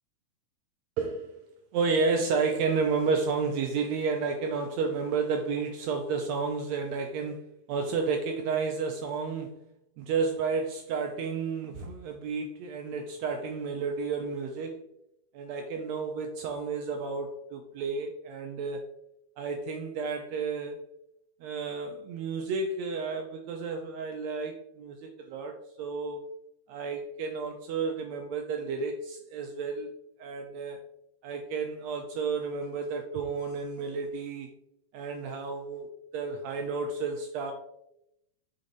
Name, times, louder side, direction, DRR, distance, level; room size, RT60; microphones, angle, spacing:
voice 1, 1.0-1.3 1.7-9.6 10.0-14.8 15.3-18.8 19.4-20.8 21.4-26.2 26.7-29.9 30.2-30.8 31.2-34.5 34.9-35.9 36.1-37.5, right 4 dB, 85° right, 4 dB, 1.5 m, -31 dB
6.9 x 4.1 x 3.8 m, 0.81 s
omnidirectional pair, 3.7 m